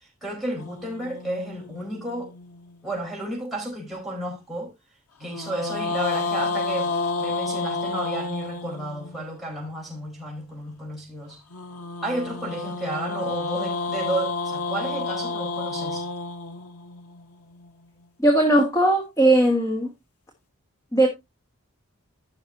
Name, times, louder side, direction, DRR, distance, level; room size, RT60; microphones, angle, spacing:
voice 1, 0.0-2.3 2.8-4.7 5.2-6.9 7.2-11.4 12.0-16.1, right 1 dB, ahead, 4.6 m, -32 dB
sound 1, 0.6-3.0 5.2-9.4 11.5-17.7, left 3 dB, 85° left, 1.3 m, -30 dB
voice 2, 18.2-19.9 20.9-21.1, right 1 dB, 15° left, 1.6 m, -18 dB
14.5 x 6.4 x 2.7 m
head